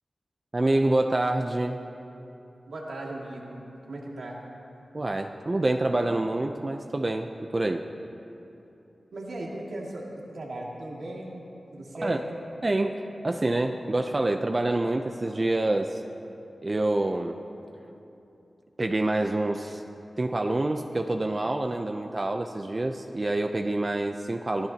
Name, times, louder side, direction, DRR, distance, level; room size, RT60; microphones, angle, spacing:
voice 1, 0.5-1.8 4.9-7.9 12.0-12.2 12.6-16.0 16.6-17.4 18.8-19.8 20.2-24.7, right 2 dB, 35° right, 5 dB, 0.6 m, -27 dB
voice 2, 2.7-4.4 9.1-11.4 11.7-12.5, right 1 dB, 85° right, -3 dB, 2.4 m, -37 dB
24.0 x 16.0 x 2.9 m, 2.9 s
wide cardioid pair, 80°, 0 cm